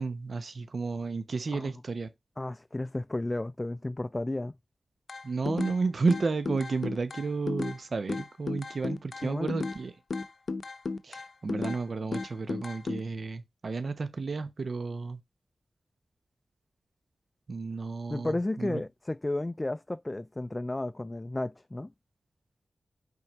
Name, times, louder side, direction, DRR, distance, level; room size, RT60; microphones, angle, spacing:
voice 1, 0.0-2.1 5.2-9.9 11.0-15.2 17.5-18.8, right 4 dB, 70° right, 0.9 m, -32 dB
voice 2, 2.4-4.5 9.2-9.5 18.1-21.9, left 2 dB, 30° left, 0.3 m, -33 dB
sound 1, 5.1-5.8 6.1-7.8 8.1-9.8 10.1-11.8 12.1-13.0, left 3 dB, 70° left, 0.7 m, -34 dB
5.6 x 3.8 x 4.4 m
cardioid pair, 45°, 0 cm